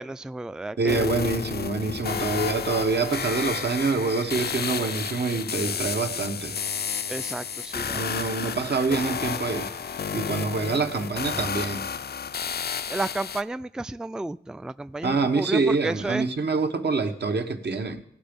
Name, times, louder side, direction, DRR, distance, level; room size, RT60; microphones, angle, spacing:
voice 1, 0.0-1.1 1.9-2.0 7.1-8.1 8.4-8.6 12.9-16.3, right 2 dB, 5° right, 14 dB, 0.3 m, -32 dB
voice 2, 0.8-6.6 7.9-9.7 10.1-11.8 15.0-18.0, right 4 dB, 75° right, 6 dB, 1.1 m, -26 dB
sound 1, 0.9-13.4, left 7 dB, 65° left, 0.4 m, -31 dB
17.0 x 6.0 x 5.2 m, 0.73 s
cardioid pair, 45°, 18 cm